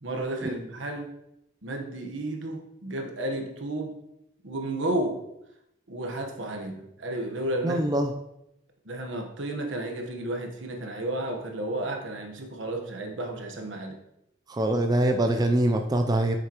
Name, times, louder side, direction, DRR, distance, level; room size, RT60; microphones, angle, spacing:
voice 1, 0.0-1.1 1.6-4.0 4.4-5.2 5.9-7.8 8.8-14.0, right 1 dB, 75° right, 3 dB, 1.2 m, -32 dB
voice 2, 7.6-8.1 14.5-16.4, right 1 dB, 20° right, 5 dB, 0.4 m, -24 dB
7.9 x 6.6 x 3.0 m, 0.82 s
head